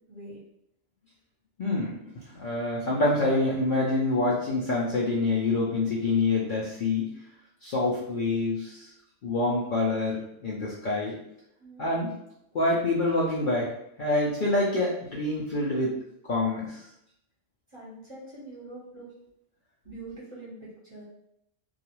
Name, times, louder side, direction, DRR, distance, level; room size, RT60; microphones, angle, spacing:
voice 1, 0.1-0.4 7.8-8.1 11.6-11.8 17.7-19.1 19.8-21.0, right 2 dB, 25° right, -8 dB, 0.9 m, -44 dB
voice 2, 1.6-2.0 2.3-7.1 7.6-8.9 9.2-11.2 11.8-12.1 12.5-13.7 14.0-16.0 16.3-16.9, left 2 dB, 55° left, -6 dB, 0.6 m, -26 dB
2.4 x 2.3 x 2.9 m, 0.76 s
omnidirectional pair, 1.2 m